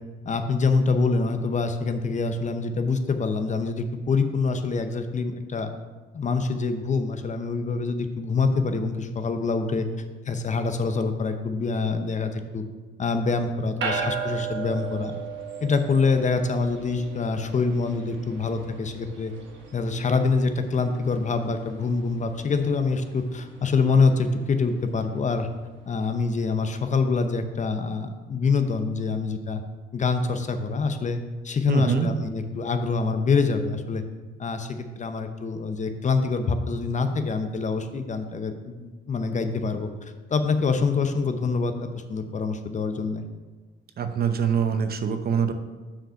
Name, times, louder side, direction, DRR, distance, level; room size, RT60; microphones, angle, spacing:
voice 1, 0.2-5.7 6.1-9.9 10.3-12.6 13.0-15.1 15.6-19.3 19.7-25.5 25.9-29.6 29.9-34.0 34.4-43.3, left 4 dB, 40° left, 8 dB, 0.7 m, -25 dB
sound 1, 13.8-25.4, right 6 dB, 70° right, 1.3 m, -37 dB
voice 2, 31.7-32.1 44.0-45.5, right 7 dB, 50° right, 8 dB, 0.7 m, -24 dB
6.2 x 5.0 x 5.6 m, 1.3 s
cardioid pair, 90°, 20 cm